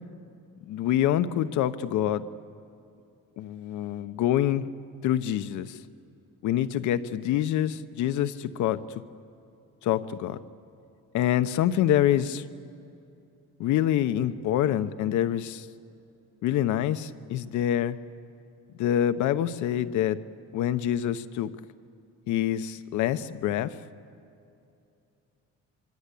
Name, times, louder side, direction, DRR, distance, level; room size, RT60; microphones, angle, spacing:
voice 1, 0.7-2.2 3.4-4.7 5.0-5.8 6.4-8.8 9.8-10.4 11.1-12.4 13.6-15.7 16.4-18.0 18.8-20.2 20.5-21.5 22.3-23.7, left 11 dB, 80° left, 11 dB, 1.0 m, -26 dB
25.5 x 24.5 x 8.5 m, 2.6 s
cardioid pair, 110°, 29 cm